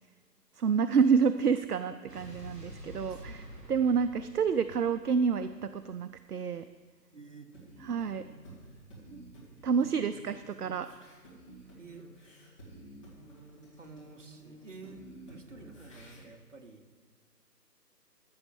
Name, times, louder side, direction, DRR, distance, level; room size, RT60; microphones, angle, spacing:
voice 1, 0.6-6.7 7.8-8.2 9.1-9.2 9.6-10.9, right 6 dB, 70° right, 11 dB, 0.5 m, -28 dB
Explosion, 2.1-6.4, equal, 15° right, 3.3 m, -49 dB
voice 2, 3.0-3.6 7.1-7.5 11.8-12.1 13.8-16.9, right 3 dB, 45° right, 4 dB, 1.1 m, -51 dB
sound 1, 7.5-16.2, right 1 dB, 20° left, 2.1 m, -52 dB
14.5 x 6.3 x 6.3 m, 1.5 s
figure-of-eight pair, 160°, 49 cm